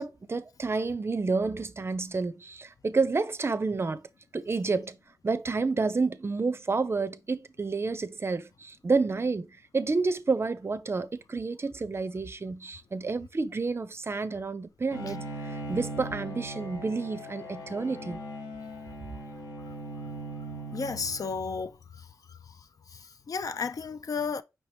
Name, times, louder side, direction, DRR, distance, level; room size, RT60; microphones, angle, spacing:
voice 1, 0.0-4.0 4.3-5.0 5.2-18.2, right 4 dB, 35° right, 0.5 m, -30 dB
Bowed string instrument, 14.9-21.6, right 1 dB, 90° left, 1.2 m, -39 dB
voice 2, 20.7-24.4, left 5 dB, 60° left, 0.4 m, -34 dB
5.4 x 2.9 x 3.3 m
cardioid pair, 65°, 7 cm